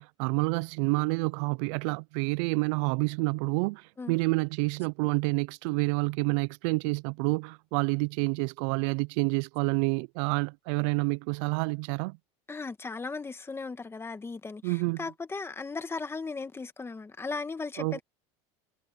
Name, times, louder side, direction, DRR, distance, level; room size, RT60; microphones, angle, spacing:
voice 1, 0.0-12.2 14.6-15.0 17.8-18.0, right 28 dB, 75° right, 0.4 m, -28 dB
voice 2, 12.5-18.0, left 4 dB, 15° left, 1.6 m, -37 dB
supercardioid pair, 125°, 16 cm